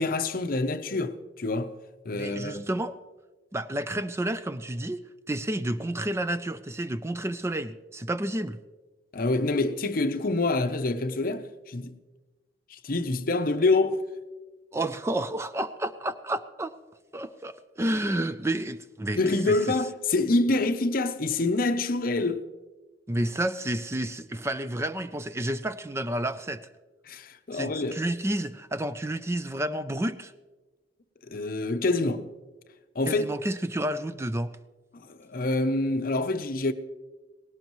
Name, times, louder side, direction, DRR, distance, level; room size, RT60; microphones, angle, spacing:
voice 1, 0.0-1.7 2.0-2.6 9.1-11.9 12.7-14.0 19.2-22.5 27.1-28.0 31.2-32.3 32.9-33.3 34.9-36.7, left 2 dB, 50° left, 0.7 m, -26 dB
voice 2, 2.1-3.0 3.5-5.0 5.3-8.6 14.7-16.7 17.1-19.2 19.5-19.8 23.1-26.6 27.5-30.3 33.1-34.5, right 1 dB, 15° right, 0.4 m, -30 dB
18.5 x 17.0 x 3.1 m
head